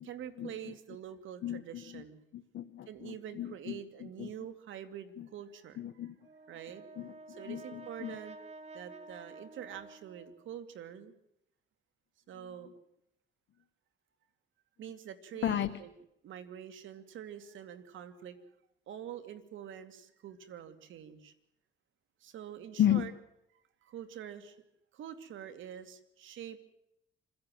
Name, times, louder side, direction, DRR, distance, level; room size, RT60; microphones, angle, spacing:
voice 1, 0.0-2.2 2.9-5.8 6.5-6.8 7.3-8.4 8.7-11.1 12.3-12.7 14.8-15.9 16.2-18.4 18.9-21.3 22.2-23.1 23.8-24.6 24.9-26.6, right 9 dB, 80° right, 10 dB, 2.5 m, -45 dB
voice 2, 1.4-2.0 2.3-3.8 4.2-4.3 5.2-5.3 5.8-6.1 7.0-8.2 15.4-15.7 22.8-23.0, left 11 dB, 65° left, 8 dB, 1.2 m, -33 dB
Brass instrument, 6.2-10.6, right 3 dB, 35° right, 2.2 m, -51 dB
26.5 x 16.5 x 7.7 m, 0.80 s
cardioid pair, 90°, 20 cm